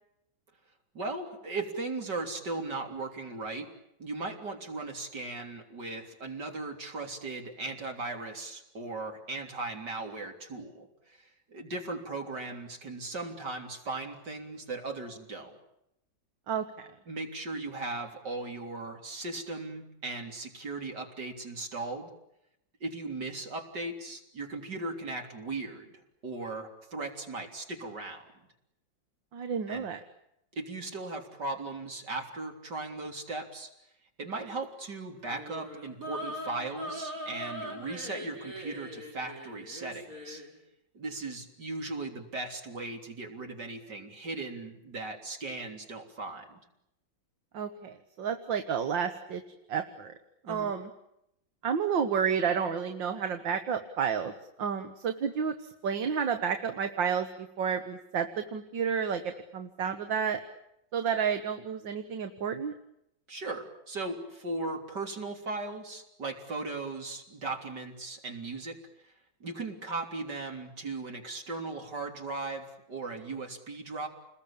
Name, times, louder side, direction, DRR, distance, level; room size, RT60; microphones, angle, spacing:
voice 1, 0.9-3.7 4.0-15.6 17.1-22.1 22.8-25.9 26.2-28.2 29.7-29.9 30.5-33.7 34.2-40.4 40.9-46.6 50.4-50.7 63.3-68.8 69.0-69.1 69.4-74.1, right 3 dB, 65° right, 3 dB, 4.1 m, -37 dB
voice 2, 29.3-30.0 47.5-49.4 49.7-50.1 50.5-50.9 51.6-54.3 54.6-55.6 55.8-57.3 57.6-60.4 60.9-62.7, right 7 dB, 80° right, 7 dB, 2.2 m, -30 dB
sound 1, 35.2-40.5, equal, 45° right, 6.0 m, -41 dB
29.5 x 21.0 x 8.7 m, 0.81 s
omnidirectional pair, 2.0 m